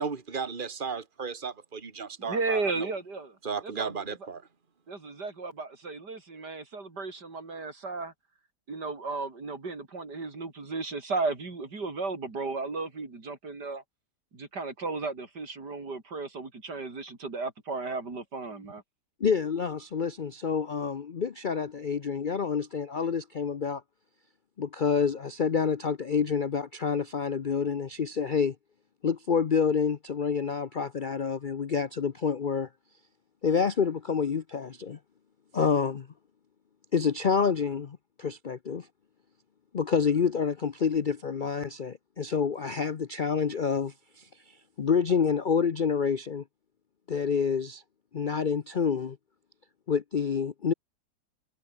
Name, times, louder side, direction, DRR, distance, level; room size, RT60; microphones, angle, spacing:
voice 1, 0.0-2.9 3.4-4.4, right 5 dB, 30° right, 2.1 m, -35 dB
voice 2, 2.2-3.4 3.6-4.3 4.9-8.1 8.7-13.8 14.3-18.8, right 3 dB, 75° right, 4.5 m, -34 dB
voice 3, 19.2-23.8 24.6-28.5 29.0-32.7 33.4-35.0 35.5-36.1 36.9-38.9 39.7-46.4 47.1-47.8 48.1-49.2 49.9-50.7, left 6 dB, 45° left, 0.6 m, -28 dB
omnidirectional pair, 1.8 m